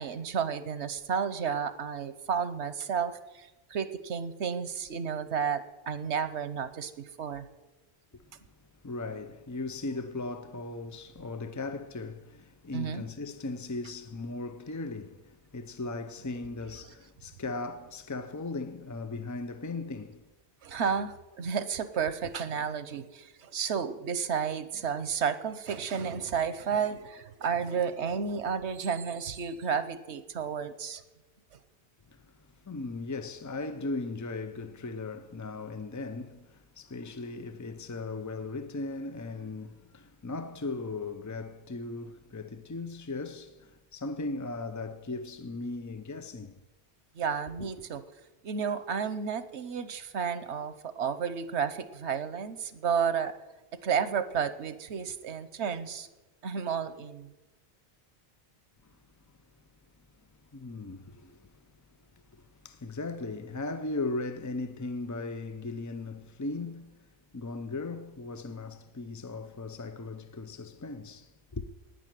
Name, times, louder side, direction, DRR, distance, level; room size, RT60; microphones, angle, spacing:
voice 1, 0.0-7.5 12.7-13.0 20.6-31.0 47.1-48.0 48.4-53.3 53.8-56.1 56.4-57.3, right 7 dB, 90° right, 1.2 m, -32 dB
voice 2, 8.1-8.5 8.7-20.3 32.1-46.6 47.6-47.7 58.8-59.0 59.3-59.4 60.5-61.7 62.0-71.7, left 3 dB, 30° left, 0.3 m, -38 dB
10.5 x 9.5 x 9.2 m
omnidirectional pair, 1.1 m